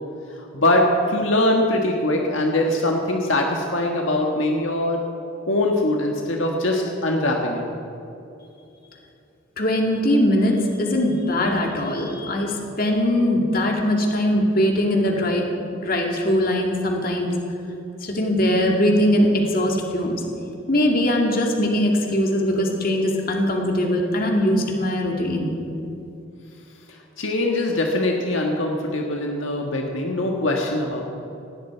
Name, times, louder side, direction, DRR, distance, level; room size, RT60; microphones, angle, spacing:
voice 1, 0.4-5.0 5.5-7.6 26.9-31.0, left 1 dB, 75° left, 0 dB, 1.6 m, -22 dB
voice 2, 9.6-15.4 15.8-17.3 18.0-20.2 20.7-25.6, left 1 dB, 45° left, 1 dB, 2.4 m, -21 dB
19.0 x 17.0 x 4.6 m, 2.8 s
head